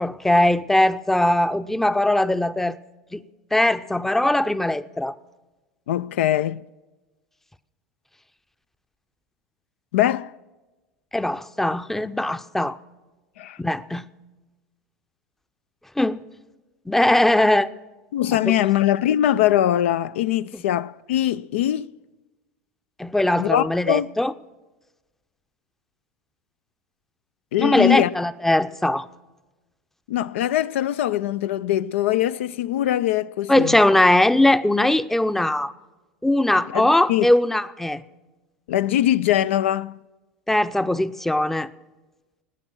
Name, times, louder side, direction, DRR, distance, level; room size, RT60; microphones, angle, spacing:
voice 1, 0.0-2.8 3.1-3.2 3.5-5.2 11.1-12.8 13.6-14.0 16.0-16.2 16.9-17.7 18.4-18.5 20.5-20.6 23.0-24.3 27.6-29.1 33.5-35.7 36.2-38.0 40.5-41.7, left 1 dB, 5° left, 0.6 m, -20 dB
voice 2, 5.9-6.6 9.9-10.3 13.4-13.6 18.1-21.9 23.4-24.1 27.5-28.1 30.1-33.8 36.7-37.3 38.7-40.0, left 12 dB, 75° left, 0.4 m, -22 dB
19.5 x 8.9 x 6.2 m
hypercardioid pair, 90°, 7 cm